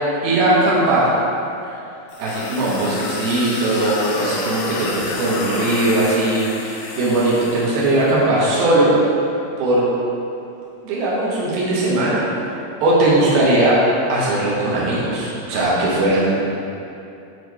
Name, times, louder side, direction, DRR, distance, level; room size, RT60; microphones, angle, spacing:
voice 1, 0.2-1.1 2.2-8.9 9.6-9.9 10.8-12.2 12.8-13.8 14.1-16.4, right 2 dB, 80° right, -7 dB, 2.9 m, -19 dB
sound 1, 2.1-8.1, left 3 dB, 75° left, 1.9 m, -30 dB
8.7 x 3.1 x 4.7 m, 2.7 s
omnidirectional pair, 4.2 m